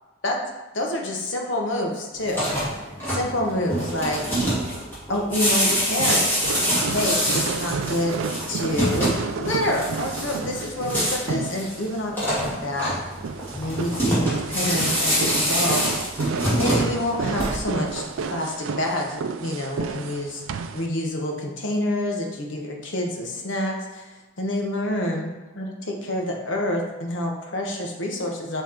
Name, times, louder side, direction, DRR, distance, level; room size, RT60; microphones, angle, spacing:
voice 1, 0.7-2.5 3.1-4.2 5.1-6.6 6.9-8.2 8.5-13.0 13.6-15.9 16.6-20.4 20.7-24.1 24.4-28.6, left 1 dB, 70° left, 0 dB, 1.1 m, -27 dB
sound 1, 2.2-17.9, equal, 10° left, 2.1 m, -25 dB
sound 2, 6.0-20.9, right 5 dB, 85° right, 0.4 m, -31 dB
7.4 x 3.4 x 4.4 m, 1.2 s
head